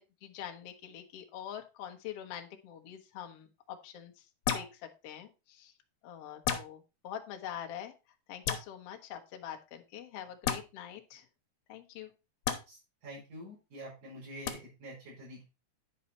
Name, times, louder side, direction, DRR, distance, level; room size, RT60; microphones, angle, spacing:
voice 1, 0.0-4.3 4.5-5.7 6.0-7.9 8.3-11.3 11.7-12.1, left 10 dB, 90° left, 5 dB, 1.3 m, -45 dB
sound 1, 4.5-4.7 6.4-6.7 8.4-8.6 10.4-10.6 12.4-12.6 14.5-14.6, left 8 dB, 65° left, 2.1 m, -31 dB
voice 2, 12.7-15.4, equal, 55° right, -8 dB, 6.5 m, -47 dB
10.0 x 5.6 x 4.1 m, 0.28 s
omnidirectional pair, 4.5 m